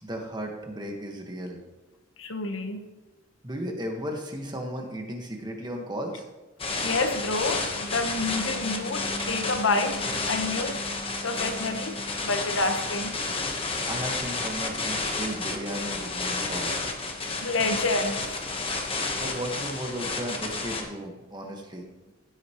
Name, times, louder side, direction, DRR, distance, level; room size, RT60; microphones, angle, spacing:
voice 1, 0.0-1.6 3.4-6.2 13.8-16.9 19.1-21.9, equal, 20° right, 2 dB, 1.4 m, -35 dB
voice 2, 2.2-2.8 6.8-13.1 17.4-18.2, left 2 dB, 75° left, 6 dB, 1.2 m, -28 dB
sound 1, 6.6-20.8, left 3 dB, 25° left, 1.2 m, -31 dB
16.0 x 8.0 x 3.1 m, 1.1 s
head